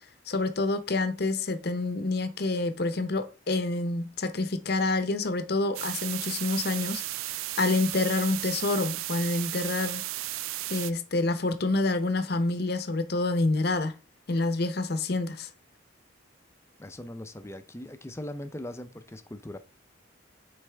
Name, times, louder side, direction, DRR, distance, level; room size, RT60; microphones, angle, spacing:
voice 1, 0.3-7.3 7.6-10.0 10.7-13.9 14.3-15.5, left 2 dB, 50° left, 0.7 m, -27 dB
sound 1, 5.7-10.9, right 15 dB, 85° right, 0.3 m, -34 dB
voice 2, 16.8-19.6, left 1 dB, 15° left, 0.5 m, -40 dB
9.8 x 4.1 x 3.4 m
head